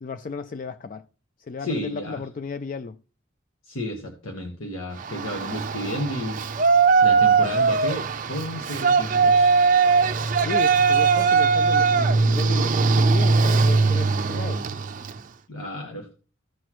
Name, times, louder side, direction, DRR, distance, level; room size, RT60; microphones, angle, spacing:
voice 1, 0.0-1.1 1.4-3.0 10.4-14.7, left 4 dB, 40° left, 0.3 m, -34 dB
voice 2, 1.6-2.2 3.6-6.4 6.7-9.6 15.5-16.1, left 1 dB, 85° left, 1.4 m, -32 dB
Yell, 5.0-15.2, right 4 dB, 40° right, 0.5 m, -20 dB
15.5 x 6.0 x 3.0 m
head